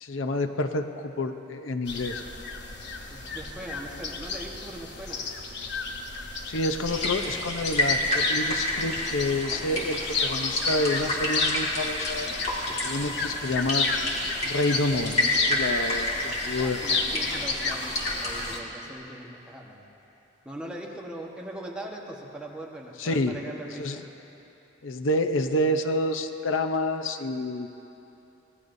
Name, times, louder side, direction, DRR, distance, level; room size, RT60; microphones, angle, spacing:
voice 1, 0.0-2.2 6.5-12.3 12.8-13.9 14.4-16.8 23.0-23.4 23.8-24.0 24.8-27.7, left 1 dB, 80° left, 7 dB, 0.7 m, -28 dB
sound 1, 1.9-18.6, left 4 dB, 55° left, 1.0 m, -32 dB
voice 2, 3.1-5.3 16.5-19.8 20.4-24.0, right 1 dB, 5° right, -2 dB, 1.2 m, -40 dB
sound 2, 6.9-18.6, left 1 dB, 30° left, 1.9 m, -30 dB
24.5 x 18.0 x 2.7 m, 3.0 s
head